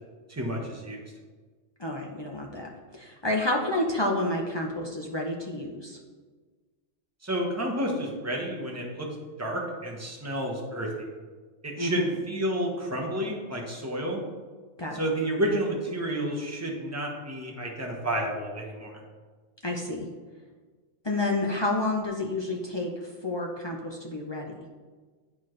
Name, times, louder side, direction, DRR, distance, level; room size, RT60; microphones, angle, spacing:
voice 1, 0.3-1.1 7.2-9.1 9.4-11.1 11.6-14.2 14.9-19.0, right 1 dB, 15° right, -1 dB, 0.9 m, -30 dB
voice 2, 1.8-6.0 11.8-12.1 14.8-15.0 19.6-20.1 21.0-22.9 23.2-24.6, left 2 dB, 35° left, 0 dB, 0.4 m, -29 dB
10.0 x 4.2 x 3.2 m, 1.4 s
omnidirectional pair, 1.4 m